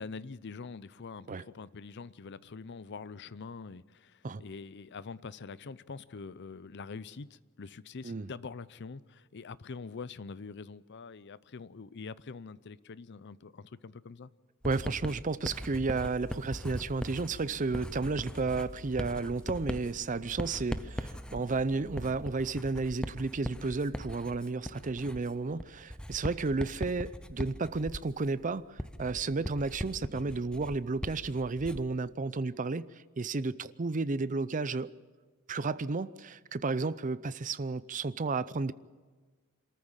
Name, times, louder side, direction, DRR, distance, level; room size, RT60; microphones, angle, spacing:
voice 1, 0.0-14.3 29.4-29.5 30.1-30.4, left 4 dB, 55° left, 0.6 m, -44 dB
Writing, 14.6-32.0, equal, 5° left, 0.7 m, -40 dB
voice 2, 14.6-34.9 35.5-38.7, right 3 dB, 40° right, 0.6 m, -32 dB
sound 1, 15.9-22.4, equal, 15° right, 2.5 m, -49 dB
26.0 x 14.0 x 7.3 m
head